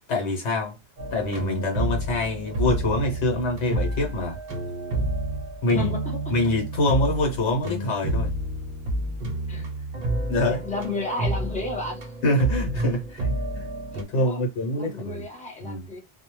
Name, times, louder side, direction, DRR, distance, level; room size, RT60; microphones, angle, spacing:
voice 1, 0.1-0.7 1.1-4.4 5.6-5.9 6.3-8.3 10.0-10.6 12.2-13.3 13.5-13.7 14.1-15.3 15.6-15.9, left 1 dB, 70° left, 1.1 m, -25 dB
sound 1, 1.0-14.0, right 1 dB, 50° right, 0.7 m, -29 dB
voice 2, 5.7-6.3 9.5-9.7 10.4-12.1 13.9-14.4 14.8-16.0, left 2 dB, 10° left, 0.6 m, -33 dB
2.3 x 2.1 x 3.0 m
omnidirectional pair, 1.2 m